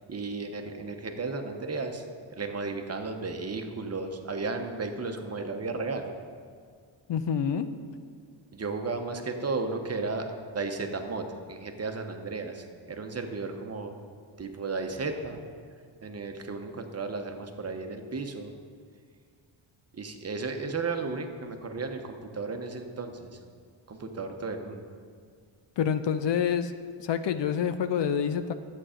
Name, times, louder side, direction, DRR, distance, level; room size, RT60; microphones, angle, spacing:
voice 1, 0.1-2.1 2.4-6.1 8.5-13.9 14.4-15.4 16.0-18.5 19.9-23.4 23.9-24.9, right 3 dB, 30° right, 5 dB, 0.9 m, -34 dB
voice 2, 7.1-7.7 25.8-26.7 27.0-28.5, left 7 dB, 65° left, 10 dB, 0.7 m, -27 dB
11.5 x 8.4 x 5.0 m, 2.1 s
wide cardioid pair, 130°, 47 cm